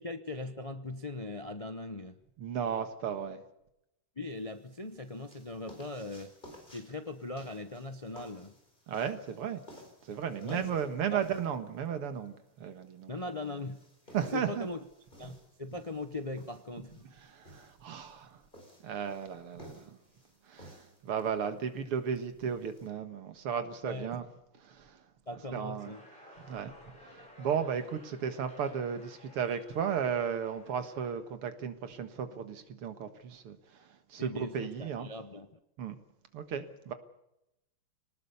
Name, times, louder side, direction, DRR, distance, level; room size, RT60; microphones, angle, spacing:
voice 1, 0.0-2.2 4.2-6.3 6.7-8.5 10.4-10.8 11.1-11.3 13.1-13.8 14.3-14.8 15.2-17.1 23.8-24.1 25.3-26.0 34.2-35.6, left 2 dB, 50° left, 8 dB, 0.4 m, -40 dB
voice 2, 2.4-3.4 8.9-9.6 10.0-13.1 14.1-14.7 17.0-18.4 18.8-20.0 20.5-24.3 24.6-25.0 25.5-25.9 26.4-26.7 27.1-35.1 35.8-36.0 36.3-36.9, right 7 dB, 85° right, 9 dB, 2.5 m, -35 dB
sound 1, 4.3-22.9, left 1 dB, 20° left, 4.5 m, -56 dB
sound 2, 25.8-31.1, left 1 dB, 20° right, 8.1 m, -56 dB
24.0 x 19.0 x 7.0 m, 0.85 s
omnidirectional pair, 2.4 m